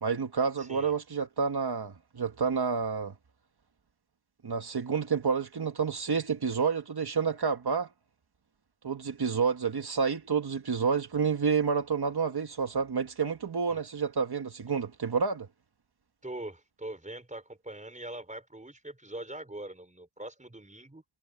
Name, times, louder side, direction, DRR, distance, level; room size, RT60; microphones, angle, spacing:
voice 1, 0.0-3.1 4.4-7.9 8.8-15.5, right 5 dB, 80° right, 1.7 m, -29 dB
voice 2, 0.6-0.9 13.7-13.8 16.2-21.0, right 1 dB, 20° right, 4.5 m, -42 dB
wide cardioid pair, 90°, 38 cm